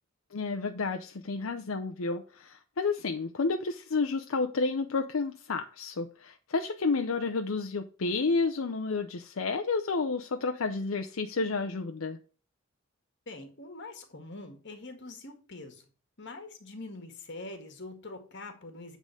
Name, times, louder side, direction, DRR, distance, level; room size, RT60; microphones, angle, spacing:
voice 1, 0.3-12.2, left 4 dB, 80° left, 0.7 m, -31 dB
voice 2, 13.3-15.8 16.2-19.0, left 2 dB, 60° left, 1.7 m, -44 dB
8.3 x 3.8 x 6.4 m
head